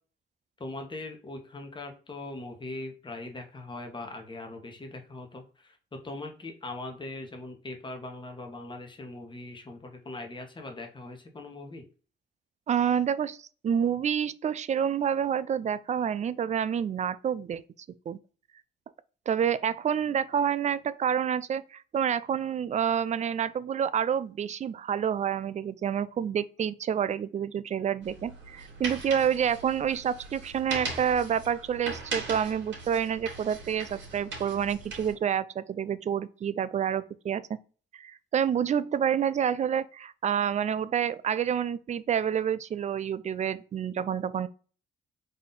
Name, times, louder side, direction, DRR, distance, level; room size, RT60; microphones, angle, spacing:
voice 1, 0.6-11.8, left 2 dB, 25° left, 1.1 m, -41 dB
voice 2, 12.7-17.6 18.1-18.2 19.3-37.5 37.9-44.5, right 8 dB, 35° right, 0.4 m, -28 dB
sound 1, 28.0-35.1, right 3 dB, 65° right, 2.0 m, -39 dB
4.1 x 2.7 x 3.8 m
cardioid pair, 90°, 20 cm